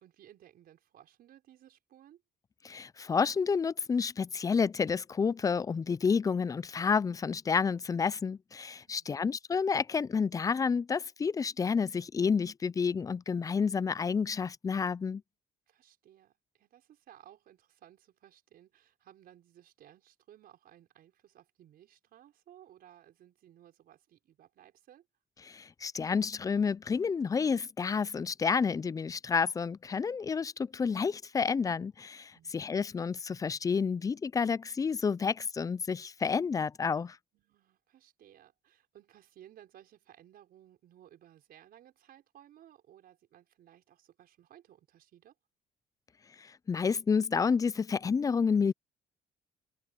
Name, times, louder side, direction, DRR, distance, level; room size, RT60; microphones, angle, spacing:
voice 1, 0.0-2.2 8.9-9.3 15.7-25.1 32.3-32.6 37.3-45.4, right 11 dB, 65° right, 5.5 m, -58 dB
voice 2, 2.6-15.2 25.4-37.2 46.4-48.7, left 5 dB, 20° left, 0.4 m, -30 dB
open air
cardioid pair, 110°, 17 cm